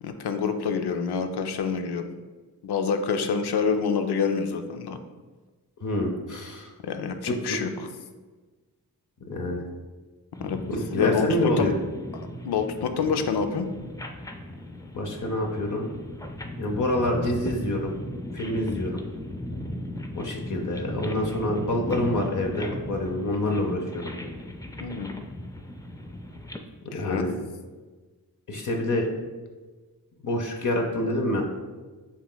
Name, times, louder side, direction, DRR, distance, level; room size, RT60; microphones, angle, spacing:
voice 1, 0.0-2.1 2.6-5.0 6.8-7.7 10.4-10.6 10.9-11.7 12.4-13.7 24.8-25.1 26.9-27.3, left 6 dB, 90° left, 7 dB, 0.5 m, -27 dB
voice 2, 5.8-6.7 7.3-7.6 9.2-9.6 10.7-11.7 14.9-15.9 16.6-17.9 18.3-19.0 20.1-24.1 26.9-27.3 28.5-29.1 30.2-31.4, left 1 dB, 50° left, 1 dB, 0.7 m, -27 dB
sound 1, 10.3-26.6, left 1 dB, 10° left, 0.4 m, -37 dB
7.2 x 3.0 x 2.2 m, 1.3 s
cardioid pair, 55°, 38 cm